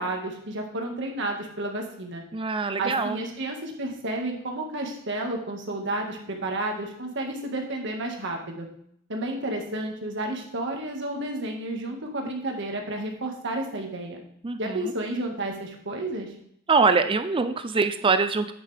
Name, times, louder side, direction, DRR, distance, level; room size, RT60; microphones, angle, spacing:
voice 1, 0.0-2.2 2.8-8.7 9.1-14.2 14.6-16.3, right 1 dB, 60° right, 1 dB, 1.8 m, -31 dB
voice 2, 2.3-3.2 14.4-14.9 16.7-18.5, right 4 dB, 25° right, 10 dB, 0.4 m, -23 dB
9.1 x 8.8 x 3.4 m, 0.69 s
head